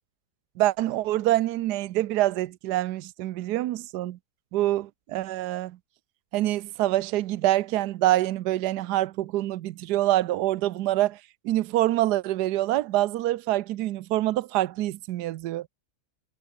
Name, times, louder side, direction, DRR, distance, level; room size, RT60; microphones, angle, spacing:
voice 1, 0.6-4.2 4.5-5.7 6.3-11.2 11.4-15.7, right 15 dB, 85° right, 1.2 m, -25 dB
omnidirectional pair, 1.7 m